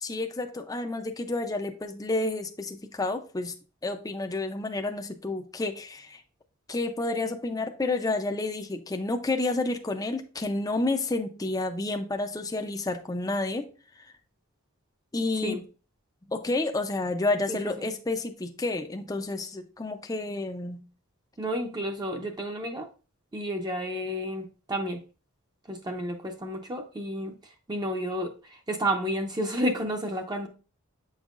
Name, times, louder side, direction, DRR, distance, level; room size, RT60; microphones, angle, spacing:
voice 1, 0.0-3.5 3.8-6.2 6.7-13.6 15.1-15.6 16.3-20.8, left 2 dB, 15° left, 6 dB, 0.5 m, -30 dB
voice 2, 21.4-22.9 23.3-25.0 25.7-27.3 27.7-30.5, equal, 20° right, 3 dB, 0.7 m, -31 dB
7.9 x 5.4 x 2.5 m, 0.36 s
head